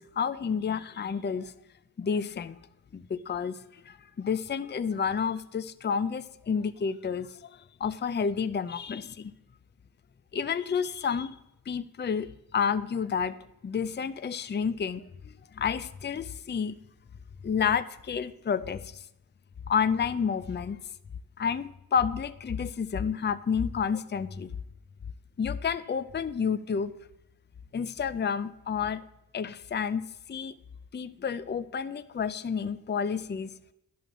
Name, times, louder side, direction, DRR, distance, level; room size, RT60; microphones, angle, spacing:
voice 1, 0.0-1.5 2.0-2.6 2.9-9.3 10.3-11.4 11.7-13.4 13.6-16.8 17.4-19.0 19.7-20.8 21.4-24.5 25.4-27.0 27.7-29.0 29.3-30.5 30.9-33.5, left 6 dB, 30° left, 13 dB, 0.5 m, -30 dB
12.0 x 11.0 x 7.4 m, 0.83 s
wide cardioid pair, 140°, 37 cm